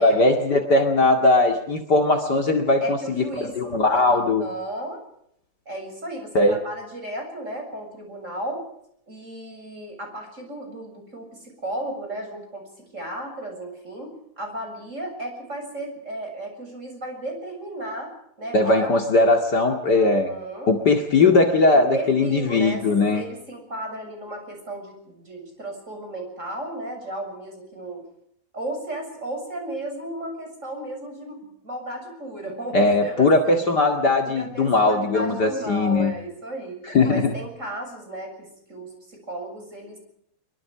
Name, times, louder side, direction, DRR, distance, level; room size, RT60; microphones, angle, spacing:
voice 1, 0.0-4.4 6.3-6.6 18.5-20.3 20.7-23.2 32.7-36.1 36.9-37.3, left 2 dB, 85° left, 4 dB, 0.9 m, -19 dB
voice 2, 2.8-3.5 4.0-5.0 5.7-8.6 9.1-12.6 12.9-18.1 18.4-19.0 19.9-20.7 21.9-22.8 23.1-28.0 28.5-33.7 34.2-36.8 37.1-40.0, right 1 dB, 15° right, 3 dB, 7.1 m, -34 dB
25.0 x 23.5 x 4.9 m, 0.71 s
omnidirectional pair, 5.6 m